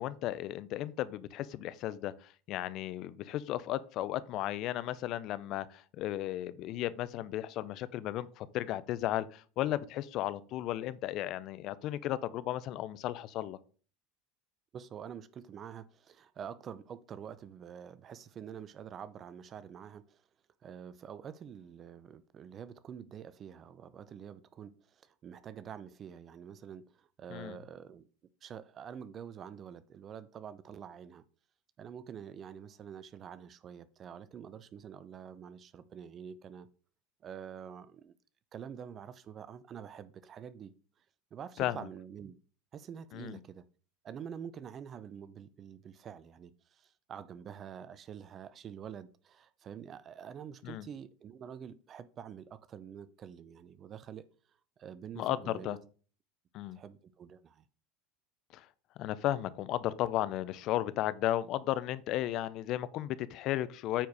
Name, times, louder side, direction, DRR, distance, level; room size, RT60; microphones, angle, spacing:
voice 1, 0.0-13.6 27.3-27.6 41.6-41.9 43.1-43.4 50.6-50.9 55.2-55.8 56.5-56.8 58.5-58.7 59.0-64.1, left 13 dB, 55° left, 0.7 m, -34 dB
voice 2, 14.7-20.2 20.6-28.0 28.4-31.2 31.8-36.7 37.2-38.1 38.5-40.7 41.3-42.4 42.7-43.6 44.0-54.2 54.8-55.8 56.7-57.6, right 8 dB, 40° right, 0.6 m, -47 dB
9.0 x 4.7 x 4.8 m
hypercardioid pair, 85°, 0 cm